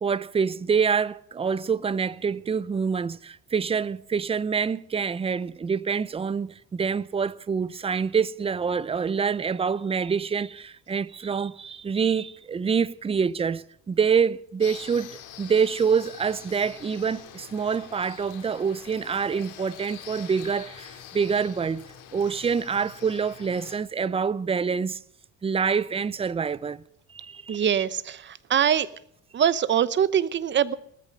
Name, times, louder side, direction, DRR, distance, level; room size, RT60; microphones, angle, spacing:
voice 1, 0.0-21.9 22.1-25.0 25.4-26.8 27.1-27.6, right 6 dB, 20° right, 0.6 m, -26 dB
sound 1, 14.6-23.8, left 9 dB, 90° left, 3.1 m, -45 dB
voice 2, 27.5-28.9 29.3-30.7, right 9 dB, 40° right, 1.0 m, -23 dB
19.0 x 14.0 x 5.4 m
cardioid pair, 130°, 30 cm